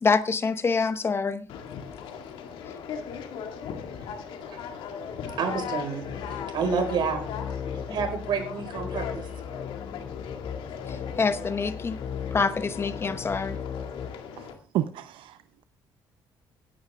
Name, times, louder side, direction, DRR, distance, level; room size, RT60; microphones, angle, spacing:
voice 1, 0.0-1.5 10.9-12.0 12.3-13.6, left 4 dB, 30° left, 0.9 m, -26 dB
Conversation, 1.5-14.5, left 7 dB, 85° left, 2.0 m, -39 dB
voice 2, 5.2-7.3 7.9-9.3, right 5 dB, 60° right, 4.9 m, -29 dB
sound 1, 6.0-14.1, left 7 dB, 45° left, 2.2 m, -37 dB
voice 3, 14.7-15.6, right 12 dB, 85° right, 0.7 m, -31 dB
17.0 x 10.5 x 3.5 m
cardioid pair, 125°, 9 cm